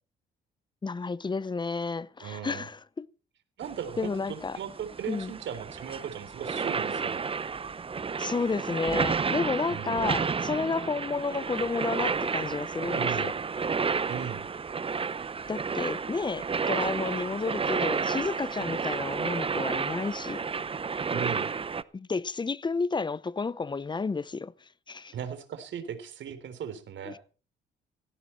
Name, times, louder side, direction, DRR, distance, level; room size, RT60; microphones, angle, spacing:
voice 1, 0.8-3.1 4.0-4.6 5.1-5.3 8.2-13.3 15.5-20.4 21.9-24.5 24.9-25.1 27.1-27.2, left 4 dB, 25° left, 0.7 m, -31 dB
voice 2, 2.2-2.7 3.6-7.3 9.7-10.1 12.9-13.3 14.1-14.5 21.1-21.5 25.1-27.2, right 8 dB, 70° right, 3.4 m, -37 dB
sound 1, 3.6-21.8, right 5 dB, 30° right, 0.7 m, -31 dB
17.5 x 16.0 x 4.4 m
cardioid pair, 90°, 20 cm